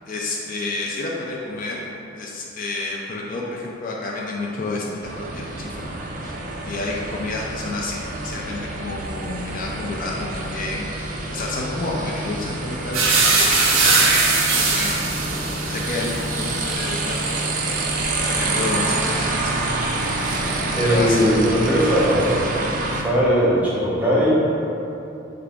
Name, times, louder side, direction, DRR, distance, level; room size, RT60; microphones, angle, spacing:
voice 1, 0.1-1.8 2.2-5.9 6.2-6.4 6.6-14.3 14.6-15.0 15.6-17.4 18.3-19.8 20.1-20.5 20.8-21.2, left 2 dB, 45° left, -2 dB, 0.3 m, -30 dB
sound 1, 5.0-23.0, right 2 dB, 40° right, 0.3 m, -27 dB
sound 2, 12.9-20.9 21.2-22.3, right 3 dB, 90° right, 0.6 m, -22 dB
voice 2, 20.7-22.4 22.9-24.4, equal, 10° right, -8 dB, 0.7 m, -19 dB
4.8 x 2.3 x 3.4 m, 2.9 s
head